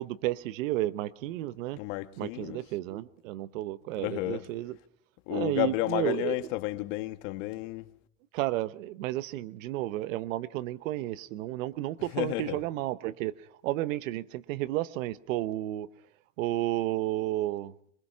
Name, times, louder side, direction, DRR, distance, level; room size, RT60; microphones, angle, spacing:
voice 1, 0.0-1.8 2.2-4.7 5.3-6.5 8.3-13.3 13.6-15.9 16.4-17.7, right 15 dB, 90° right, 1.1 m, -32 dB
voice 2, 1.7-2.6 3.9-4.4 5.3-7.9 12.1-12.6, left 19 dB, 75° left, 1.4 m, -32 dB
23.5 x 21.0 x 5.7 m
supercardioid pair, 130°, 38 cm